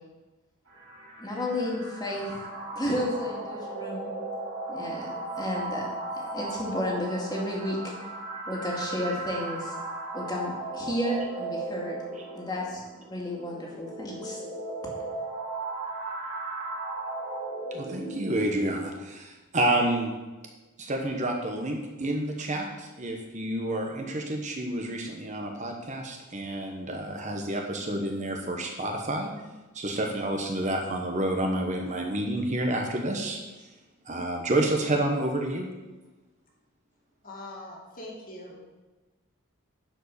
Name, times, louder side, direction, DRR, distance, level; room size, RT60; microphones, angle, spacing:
sound 1, 0.7-18.6, right 2 dB, 60° right, 3.8 m, -36 dB
voice 1, 1.2-2.4 2.7-4.2 4.7-5.9 6.1-7.9 8.5-9.7 10.1-12.0 12.3-12.8 13.1-14.4, left 1 dB, 20° left, -2 dB, 2.2 m, -32 dB
voice 2, 17.7-20.1 20.8-29.3 29.7-33.4 34.1-35.7, right 1 dB, 35° right, 2 dB, 1.2 m, -29 dB
voice 3, 37.2-38.6, left 1 dB, 40° left, -2 dB, 2.3 m, -42 dB
11.0 x 5.2 x 6.8 m, 1.2 s
head